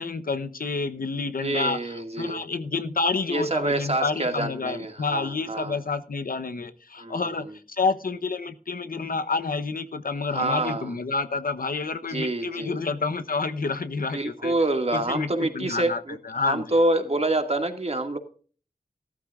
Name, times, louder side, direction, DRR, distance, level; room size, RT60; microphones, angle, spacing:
voice 1, 0.0-14.5 14.9-16.7, left 4 dB, 85° left, 10 dB, 0.9 m, -29 dB
voice 2, 1.4-2.4 3.3-5.8 7.0-7.5 10.3-10.9 12.1-12.8 14.1-16.2 16.4-18.2, right 2 dB, 45° right, 5 dB, 2.2 m, -27 dB
15.0 x 13.0 x 2.5 m, 0.40 s
wide cardioid pair, 50°, 14 cm